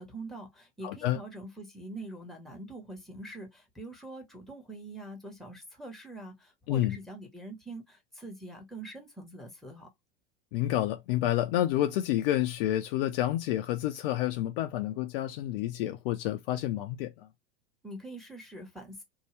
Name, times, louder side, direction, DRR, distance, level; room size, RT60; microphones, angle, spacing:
voice 1, 0.0-9.9 17.8-19.0, right 2 dB, ahead, 1.1 m, -44 dB
voice 2, 0.8-1.2 6.7-7.0 10.5-17.3, left 13 dB, 55° left, 0.5 m, -29 dB
2.7 x 2.3 x 3.2 m
hypercardioid pair, 90°, 34 cm